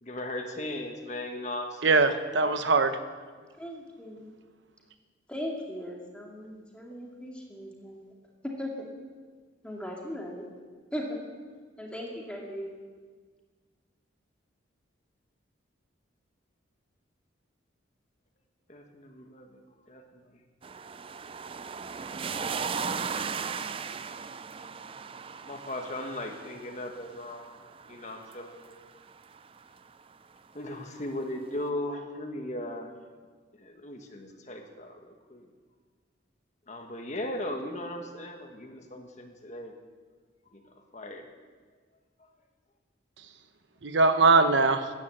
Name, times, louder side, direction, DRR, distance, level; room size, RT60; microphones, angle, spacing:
voice 1, 0.0-2.2 2.4-2.7 18.7-19.6 19.9-20.4 25.4-27.5 27.8-28.9 30.5-32.9 33.6-35.5 36.7-39.7 40.5-41.3, left 1 dB, 35° left, 4 dB, 1.5 m, -38 dB
voice 2, 1.8-2.9 43.8-44.9, right 3 dB, 70° right, 9 dB, 1.0 m, -21 dB
voice 3, 3.6-4.3 5.3-8.0 8.6-8.9 9.6-10.5 10.9-11.2 11.8-12.7, equal, 5° left, -2 dB, 2.2 m, -38 dB
sound 1, 20.6-29.7 31.0-31.1, right 6 dB, 30° right, 0.4 m, -37 dB
14.0 x 10.5 x 7.8 m, 1.5 s
head